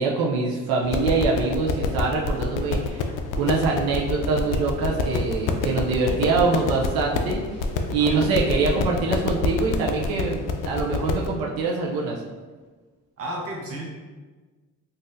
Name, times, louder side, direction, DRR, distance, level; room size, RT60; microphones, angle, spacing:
voice 1, 0.0-3.1 3.4-7.4 7.9-12.2, right 4 dB, 85° right, -2 dB, 0.6 m, -24 dB
sound 1, 0.8-11.3, left 4 dB, 65° left, 0.5 m, -27 dB
voice 2, 13.2-13.8, right 1 dB, 40° right, -1 dB, 0.9 m, -33 dB
4.0 x 2.6 x 2.6 m, 1.3 s
cardioid pair, 95°, 35 cm